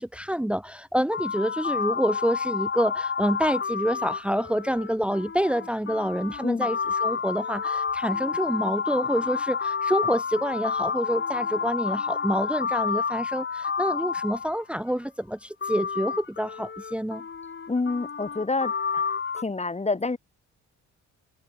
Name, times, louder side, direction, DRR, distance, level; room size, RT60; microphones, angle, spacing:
voice 1, 0.0-17.2, equal, 5° right, 1.4 m, -27 dB
sound 1, 1.1-14.9 15.6-19.4, left 5 dB, 40° left, 6.0 m, -30 dB
voice 2, 17.7-19.0 19.3-20.2, left 3 dB, 20° left, 4.3 m, -28 dB
cardioid pair, 90°, 30 cm